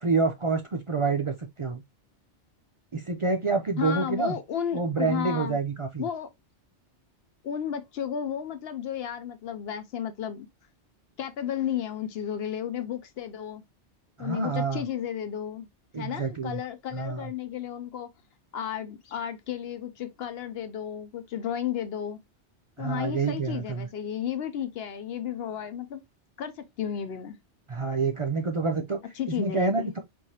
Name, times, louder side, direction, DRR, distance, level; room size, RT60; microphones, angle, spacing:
voice 1, 0.0-1.8 2.9-4.3 4.7-6.1 14.2-14.8 15.9-16.6 16.9-17.3 22.8-23.9 27.7-29.0 29.3-30.0, right 4 dB, 55° right, 0.3 m, -27 dB
voice 2, 3.8-5.6 6.0-6.3 7.4-10.5 11.2-13.6 14.2-15.7 16.0-18.1 18.5-22.2 22.8-26.0 26.4-27.4 29.2-29.9, left 9 dB, 65° left, 0.7 m, -33 dB
4.7 x 2.6 x 2.7 m
omnidirectional pair, 1.2 m